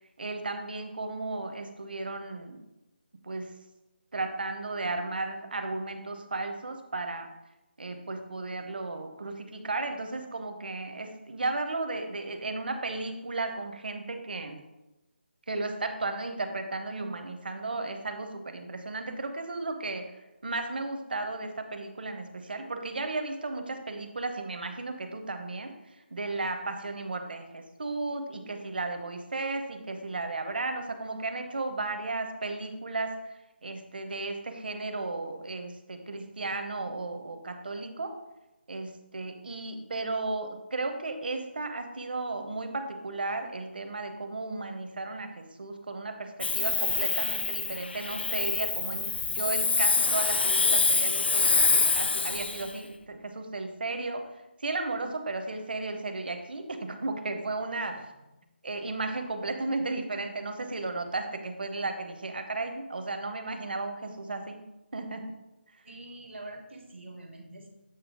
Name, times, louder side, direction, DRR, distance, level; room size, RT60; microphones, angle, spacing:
voice 1, 0.2-2.7 3.2-3.6 4.1-7.3 7.8-14.6 15.5-20.1 20.4-38.2 38.7-54.3 54.6-58.1 58.6-64.6 64.9-65.3, right 3 dB, 55° right, 6 dB, 0.8 m, -34 dB
Hiss, 46.4-52.7, left 4 dB, 65° left, 0.4 m, -26 dB
voice 2, 57.9-58.3 65.8-67.7, right 2 dB, 85° right, 3 dB, 1.5 m, -45 dB
8.1 x 3.2 x 5.1 m, 0.96 s
hypercardioid pair, 180°, 6 cm